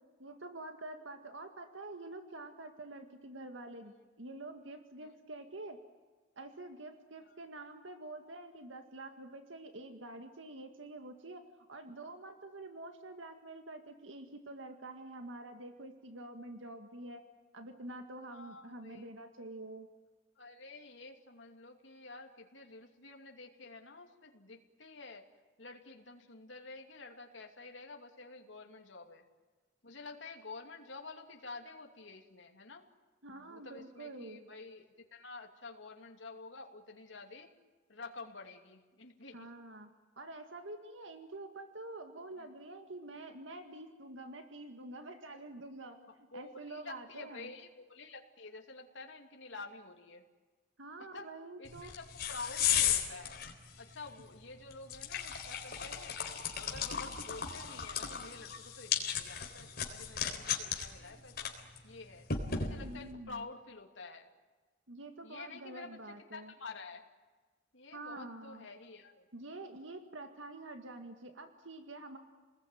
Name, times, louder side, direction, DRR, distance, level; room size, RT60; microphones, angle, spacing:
voice 1, 0.2-5.8 6.4-17.2 17.5-19.9 33.2-34.4 39.3-39.9 40.2-47.5 50.8-51.9 62.6-63.5 64.9-66.5 67.9-68.7 69.3-72.2, right 2 dB, 85° right, 6 dB, 2.0 m, -47 dB
voice 2, 18.3-19.0 20.4-25.2 25.6-29.2 29.8-32.9 33.3-37.5 37.9-39.5 42.4-42.5 46.3-50.2 51.0-51.3 51.6-53.4 53.8-56.2 56.5-61.5 61.8-62.3 62.6-64.3 65.2-67.0 67.7-69.2, left 3 dB, 75° left, 2 dB, 2.6 m, -49 dB
sound 1, 51.7-63.1, left 8 dB, 55° left, 3.8 m, -36 dB
28.5 x 20.5 x 9.2 m, 1.3 s
head